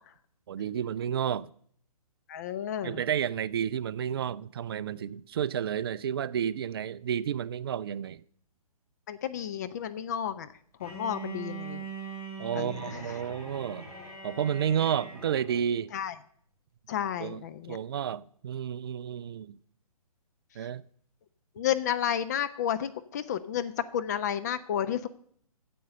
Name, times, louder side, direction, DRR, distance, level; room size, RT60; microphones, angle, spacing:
voice 1, 0.5-1.5 2.8-8.2 12.4-13.9 14.2-15.9 17.2-17.4 17.7-19.6 20.6-20.8, right 9 dB, 40° right, 0.4 m, -31 dB
voice 2, 2.3-3.0 9.1-10.5 10.8-11.9 12.5-13.3 15.9-16.2 16.9-17.8 21.6-25.1, left 9 dB, 30° left, 0.4 m, -32 dB
Bowed string instrument, 10.8-15.7, right 4 dB, 85° left, 4.6 m, -42 dB
9.3 x 7.7 x 6.7 m
figure-of-eight pair, 130°, 19 cm